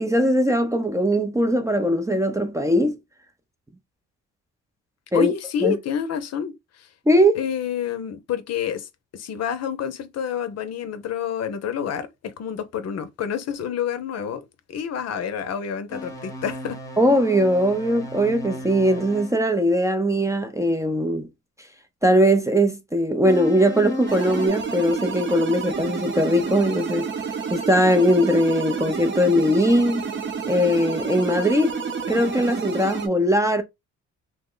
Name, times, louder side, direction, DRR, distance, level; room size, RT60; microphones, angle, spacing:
voice 1, 0.0-3.0 5.1-5.3 5.6-5.7 7.1-7.4 17.0-21.3 22.0-27.1 27.5-30.1 30.5-31.8 32.1-33.6, equal, 10° right, 0.4 m, -20 dB
voice 2, 5.1-6.5 6.8-6.9 7.4-8.9 9.1-16.8, left 8 dB, 55° left, 0.6 m, -28 dB
sound 1, 15.9-19.4 23.2-24.5, left 1 dB, 10° left, 0.8 m, -35 dB
sound 2, 24.1-33.1, right 5 dB, 40° right, 0.8 m, -29 dB
3.0 x 2.1 x 3.7 m
cardioid pair, 90°, 30 cm